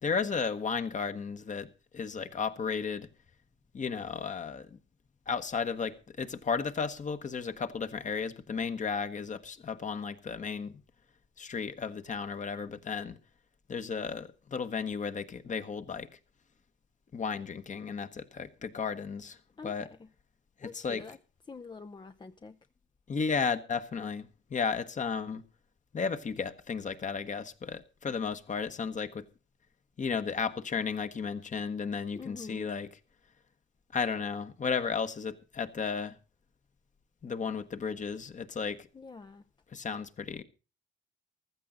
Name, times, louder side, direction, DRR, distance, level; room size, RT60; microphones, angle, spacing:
voice 1, 0.0-1.7 1.9-3.1 3.7-4.8 5.3-10.8 11.4-13.2 13.7-16.1 17.1-19.4 19.6-19.9 20.6-21.0 23.1-25.4 25.9-29.2 30.0-32.9 33.9-36.1 37.2-38.9 39.7-40.4, left 5 dB, 40° left, 1.3 m, -34 dB
voice 2, 19.6-20.1 20.6-21.2 21.5-22.6 32.1-32.7 38.9-39.4, left 4 dB, 25° left, 0.6 m, -46 dB
15.0 x 13.5 x 3.9 m
cardioid pair, 90°, 20 cm